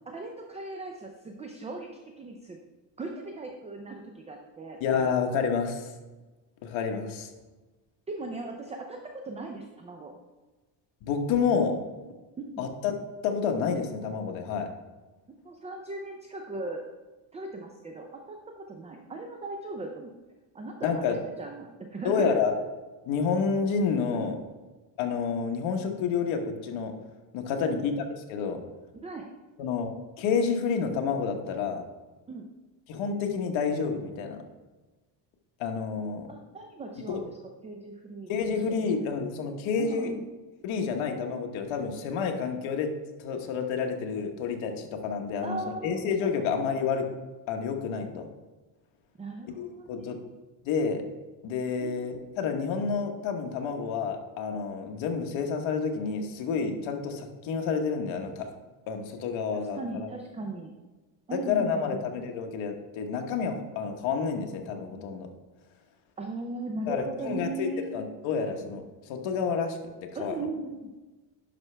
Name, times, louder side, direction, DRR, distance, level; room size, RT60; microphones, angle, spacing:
voice 1, 0.1-1.9 2.2-2.6 3.0-4.8 8.1-10.1 12.4-12.7 15.4-16.8 17.3-20.1 20.5-22.3 24.1-24.3 27.7-27.9 28.9-29.3 32.3-32.5 36.3-37.4 37.6-38.3 38.8-39.1 39.8-40.2 45.4-46.1 46.4-46.5 49.2-50.3 51.8-52.0 59.6-60.7 61.3-62.1 66.2-68.0 70.1-70.9, right 2 dB, 15° right, 3 dB, 0.4 m, -38 dB
voice 2, 4.8-5.9 6.6-7.3 11.0-11.8 12.6-12.9 13.2-14.7 20.8-21.2 22.0-22.5 23.1-24.3 25.0-27.0 27.3-27.9 28.3-28.6 29.6-31.8 32.9-34.4 35.6-36.3 37.1-37.2 38.3-40.1 40.6-47.1 47.5-48.3 49.5-50.2 50.6-51.0 51.4-58.5 58.9-60.1 61.3-65.3 66.9-70.3, left 5 dB, 75° left, 4 dB, 1.2 m, -29 dB
10.5 x 5.8 x 3.3 m, 1.2 s
cardioid pair, 165°, 46 cm